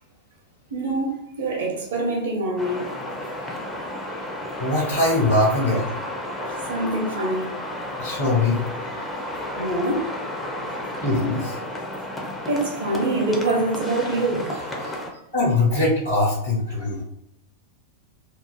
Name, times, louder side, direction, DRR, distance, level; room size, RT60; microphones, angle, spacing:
voice 1, 0.7-2.9 3.8-4.0 5.7-7.5 8.7-9.3 9.6-10.1 11.1-11.2 12.3-15.2, right 2 dB, 55° right, 0.5 m, -26 dB
sound 1, 2.6-15.1, left 1 dB, 15° left, 0.4 m, -32 dB
voice 2, 4.6-5.8 8.0-8.6 11.0-11.6 15.3-17.0, left 2 dB, 80° left, 1.0 m, -21 dB
2.4 x 2.3 x 2.2 m
figure-of-eight pair, 90°, 0 cm